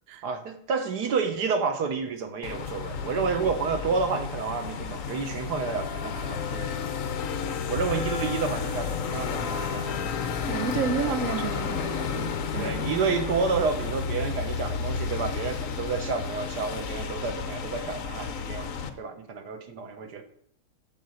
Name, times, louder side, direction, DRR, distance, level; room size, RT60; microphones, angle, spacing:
voice 1, 0.2-6.9 7.7-10.0 12.6-18.7 19.0-20.2, right 5 dB, 55° right, 6 dB, 1.5 m, -30 dB
sound 1, 2.4-18.9, left 6 dB, 65° left, 0.8 m, -32 dB
voice 2, 10.4-12.8, right 7 dB, 75° right, 9 dB, 0.7 m, -31 dB
9.7 x 4.6 x 7.6 m, 0.65 s
omnidirectional pair, 2.4 m